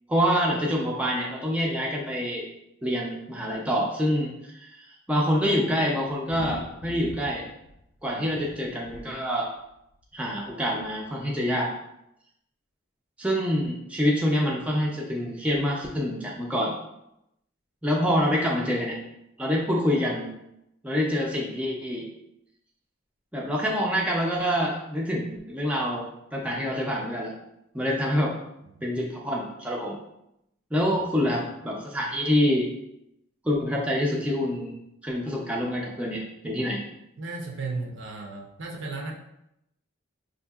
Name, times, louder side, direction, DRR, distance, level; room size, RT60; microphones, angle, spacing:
voice 1, 0.1-2.5 2.8-7.4 8.0-9.5 10.1-11.7 13.2-16.7 17.8-19.0 19.4-20.3 20.8-22.1 23.3-27.3 27.7-28.3 28.8-30.0 30.7-32.7 33.4-34.7 35.0-36.8, equal, 5° right, -2 dB, 0.4 m, -26 dB
sound 1, 6.3-8.1 8.4-9.0 10.0-10.1 10.5-10.6 10.8-10.9, left 3 dB, 65° left, 0.4 m, -41 dB
voice 2, 37.2-39.1, right 3 dB, 65° right, 1 dB, 0.6 m, -35 dB
4.8 x 2.7 x 2.3 m, 0.83 s
head